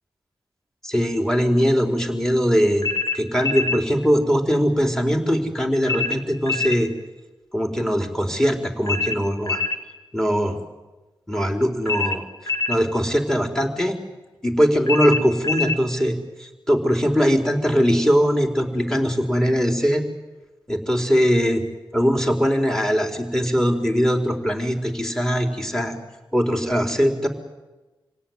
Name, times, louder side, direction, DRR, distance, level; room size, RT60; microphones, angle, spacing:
voice 1, 0.8-2.9 3.1-6.9 7.5-9.6 10.1-10.6 11.3-14.0 14.4-20.0 20.7-21.6 21.9-25.9 26.3-27.3, equal, 5° left, 4 dB, 4.4 m, -21 dB
sound 1, 2.8-3.8 5.9-6.8 8.9-9.8 11.9-12.8 14.9-15.8, left 4 dB, 40° left, 2.0 m, -25 dB
26.5 x 17.0 x 9.6 m, 1.2 s
cardioid pair, 55°, 9 cm